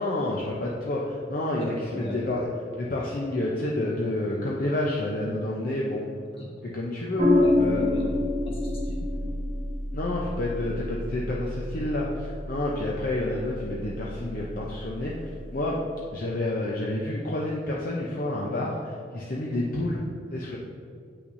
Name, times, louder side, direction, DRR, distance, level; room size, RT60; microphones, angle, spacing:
voice 1, 0.0-2.5 2.8-6.1 6.6-7.8 9.9-15.8 16.1-20.0 20.3-20.6, left 1 dB, 50° left, -4 dB, 0.6 m, -29 dB
voice 2, 1.6-2.3 6.3-6.5 7.4-8.2 8.5-9.2, left 1 dB, 30° left, -4 dB, 1.3 m, -38 dB
sound 1, 7.2-15.7, left 1 dB, 85° right, 1.6 m, -28 dB
8.1 x 5.8 x 2.6 m, 2.3 s
head